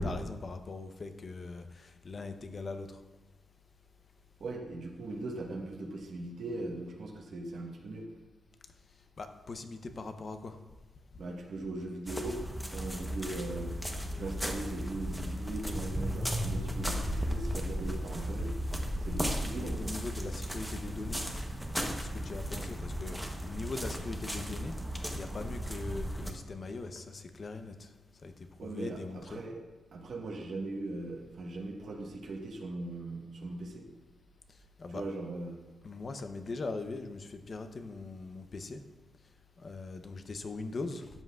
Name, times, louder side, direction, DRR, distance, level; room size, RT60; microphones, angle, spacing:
voice 1, 0.0-3.0 9.2-10.6 19.5-21.2 22.0-23.2 23.5-24.7 25.1-27.9 28.2-28.3 28.6-29.4 34.8-35.1 35.8-38.8 39.6-41.1, left 3 dB, 40° left, 7 dB, 0.7 m, -40 dB
voice 2, 4.4-8.1 11.2-12.4 12.7-13.8 14.1-18.5 19.0-20.0 28.6-29.6 29.9-33.9 34.9-35.6, right 2 dB, 65° right, 0 dB, 1.2 m, -39 dB
sound 1, 12.1-26.3, equal, ahead, 0.9 m, -35 dB
12.5 x 8.0 x 2.4 m, 1.2 s
wide cardioid pair, 125°, 0 cm